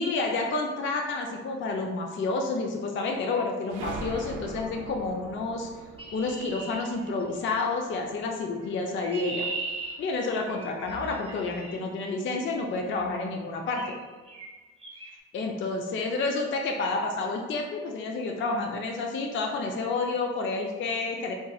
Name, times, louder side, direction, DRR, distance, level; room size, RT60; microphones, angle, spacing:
voice 1, 0.0-5.7 6.1-9.5 10.0-14.0 15.3-21.3, left 3 dB, 40° left, 2 dB, 0.4 m, -29 dB
sound 1, 3.7-8.2, right 4 dB, 80° right, 0.5 m, -41 dB
Chirp tweet, 6.0-7.6 8.6-11.8 12.9-13.1 13.7-14.0 14.3-14.5 14.8-15.1, right 3 dB, 20° right, 0.7 m, -39 dB
3.8 x 2.5 x 2.3 m, 1.4 s
cardioid pair, 90°, 30 cm